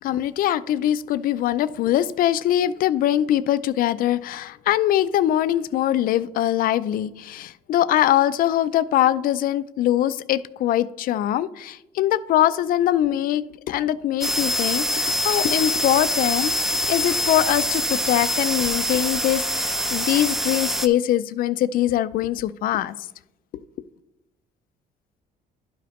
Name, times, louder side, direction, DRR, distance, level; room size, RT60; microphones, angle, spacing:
voice 1, 0.0-22.9, left 12 dB, 60° left, 16 dB, 0.4 m, -22 dB
sound 1, 14.2-20.9, left 1 dB, ahead, 0.4 m, -24 dB
11.5 x 5.0 x 3.0 m, 0.93 s
cardioid pair, 110°, 17 cm